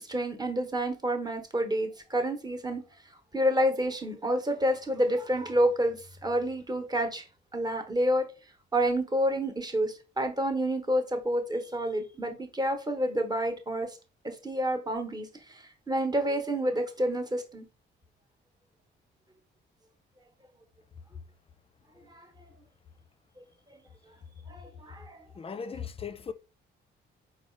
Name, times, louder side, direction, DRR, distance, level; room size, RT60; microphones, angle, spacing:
voice 1, 0.1-2.8 3.3-7.2 7.5-8.2 8.7-13.9 14.2-17.7 22.1-22.3 24.5-25.2, equal, 20° right, 1.0 m, -29 dB
voice 2, 25.4-26.3, left 6 dB, 30° left, 0.4 m, -37 dB
4.3 x 2.4 x 4.4 m
cardioid pair, 90°, 20 cm